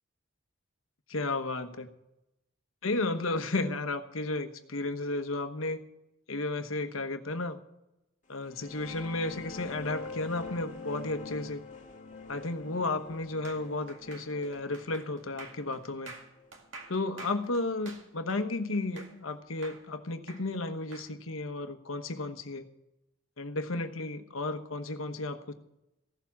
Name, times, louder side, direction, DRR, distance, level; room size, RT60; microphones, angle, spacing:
voice 1, 1.1-1.9 2.8-5.8 6.3-7.6 8.3-11.6 12.3-16.1 16.9-22.7 23.4-25.5, left 2 dB, 80° left, 8 dB, 1.1 m, -33 dB
sound 1, 8.3-17.7, left 3 dB, 40° left, 2.0 m, -45 dB
sound 2, 13.4-19.3 19.6-21.1, right 3 dB, 65° right, 2.1 m, -48 dB
16.0 x 7.1 x 7.3 m, 0.91 s
head